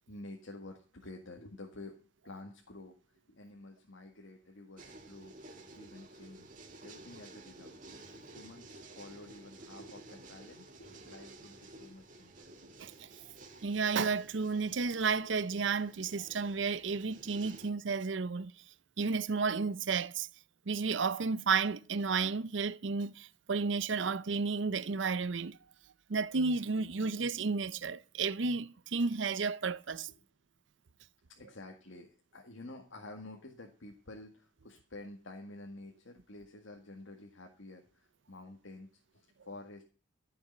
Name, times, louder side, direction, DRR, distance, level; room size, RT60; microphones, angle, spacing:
voice 1, 0.1-5.4 5.7-6.5 6.8-7.8 8.2-12.5 31.4-39.8, left 2 dB, 80° left, 2.0 m, -50 dB
sound 1, 4.8-17.7, right 2 dB, 45° right, 2.2 m, -53 dB
voice 2, 13.6-18.5 19.0-20.3 20.7-25.6 26.1-30.1, right 4 dB, 65° right, 0.7 m, -32 dB
14.0 x 7.0 x 8.2 m
head